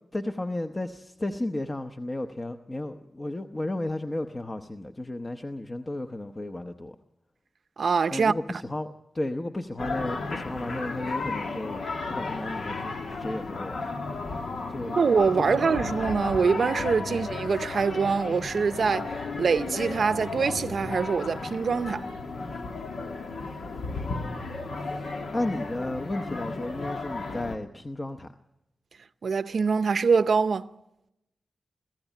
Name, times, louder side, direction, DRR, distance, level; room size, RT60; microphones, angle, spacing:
voice 1, 0.1-7.0 8.1-11.8 12.1-13.8 14.7-15.0 15.4-15.7 17.0-17.2 25.3-28.3, left 1 dB, 25° left, 0.8 m, -33 dB
voice 2, 7.8-8.6 14.9-22.1 29.2-30.7, right 5 dB, 70° right, 0.7 m, -24 dB
sound 1, 9.8-27.6, left 3 dB, 80° left, 1.8 m, -34 dB
22.5 x 15.0 x 9.1 m
wide cardioid pair, 100°, 0 cm